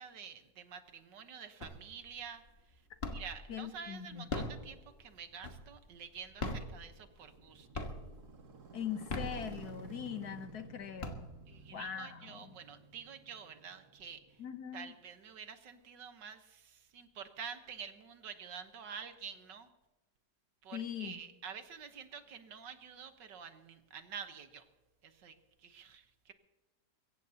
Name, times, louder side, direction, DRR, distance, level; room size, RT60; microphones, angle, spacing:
voice 1, 0.0-2.4 3.1-7.9 11.5-14.4 14.7-19.7 20.6-24.6 25.0-26.3, right 7 dB, 80° right, 8 dB, 1.8 m, -48 dB
sound 1, 1.6-2.1 2.5-3.5 4.1-5.9 6.3-7.4 7.7-8.3 8.9-10.0 10.5-10.6 10.8-11.7, left 2 dB, 35° left, 1.6 m, -40 dB
voice 2, 3.5-4.5 8.7-11.3 11.7-12.6 14.4-14.9 20.7-21.2, left 8 dB, 65° left, 8 dB, 1.5 m, -42 dB
Motorcycle, 5.6-15.1, right 4 dB, 60° right, 2.3 m, -54 dB
22.5 x 16.5 x 2.8 m, 1.2 s
omnidirectional pair, 1.9 m